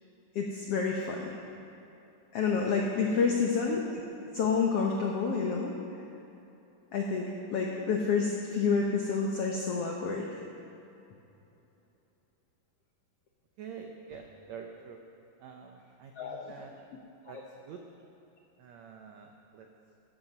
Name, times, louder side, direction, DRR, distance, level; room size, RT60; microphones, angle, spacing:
voice 1, 0.3-1.4 2.3-4.0 4.3-5.8 6.9-10.4 16.2-16.5 17.3-17.4, left 5 dB, 90° left, 0 dB, 1.3 m, -29 dB
voice 2, 13.6-15.0 15.4-16.7 17.3-17.4 17.6-17.8 18.6-19.7, right 7 dB, 90° right, 3 dB, 1.5 m, -46 dB
13.0 x 13.0 x 5.4 m, 2.9 s
omnidirectional pair, 4.2 m